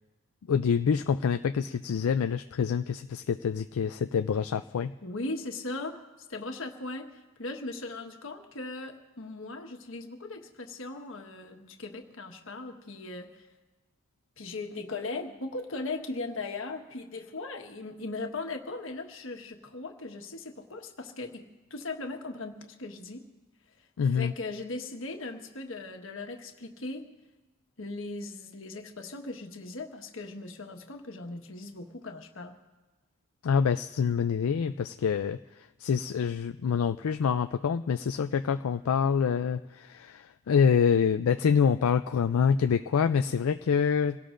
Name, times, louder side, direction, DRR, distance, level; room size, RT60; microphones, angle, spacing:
voice 1, 0.5-4.9 24.0-24.3 33.4-44.2, left 6 dB, 85° left, 9 dB, 0.4 m, -26 dB
voice 2, 5.0-6.0 6.3-13.5 14.4-21.4 21.7-23.2 24.1-27.0 27.8-32.6, left 3 dB, 65° left, 3 dB, 1.4 m, -38 dB
27.5 x 17.5 x 2.6 m, 1.2 s
head